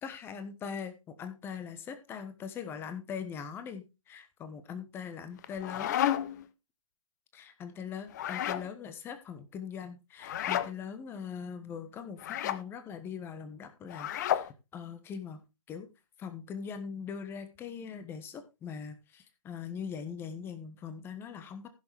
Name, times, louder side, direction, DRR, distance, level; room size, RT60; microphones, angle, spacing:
voice 1, 0.0-6.0 7.3-15.4 15.7-15.9 16.2-21.7, left 6 dB, 10° left, 10 dB, 1.2 m, -41 dB
sound 1, 5.4-6.5 8.1-8.7 10.2-10.7 12.2-12.6 13.9-14.5, left 11 dB, 30° left, 0.8 m, -31 dB
15.5 x 7.0 x 3.4 m, 0.27 s
figure-of-eight pair, 135°, 18 cm